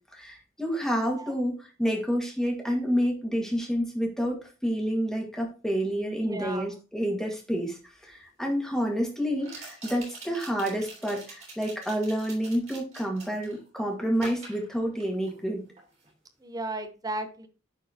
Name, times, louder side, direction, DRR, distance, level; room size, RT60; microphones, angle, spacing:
voice 1, 0.1-15.6, equal, 5° left, 0 dB, 1.8 m, -29 dB
voice 2, 6.2-6.7 16.4-17.5, right 2 dB, 20° right, 7 dB, 0.8 m, -34 dB
sound 1, 7.7-7.8 9.4-13.6 14.1-15.5 15.8-16.1, right 2 dB, 35° right, 3.2 m, -45 dB
10.5 x 4.5 x 2.8 m, 0.33 s
head